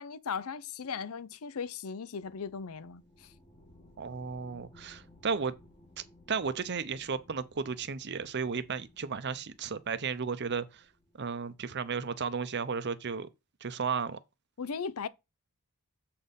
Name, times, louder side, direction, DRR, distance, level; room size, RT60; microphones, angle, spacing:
voice 1, 0.0-3.3 14.6-15.1, left 6 dB, 70° left, 0.6 m, -38 dB
sound 1, 2.2-12.2, left 1 dB, 25° left, 1.3 m, -60 dB
voice 2, 4.0-5.5 6.3-10.8 11.2-13.3 13.6-14.2, right 5 dB, 50° right, 0.7 m, -34 dB
7.6 x 4.3 x 5.2 m
head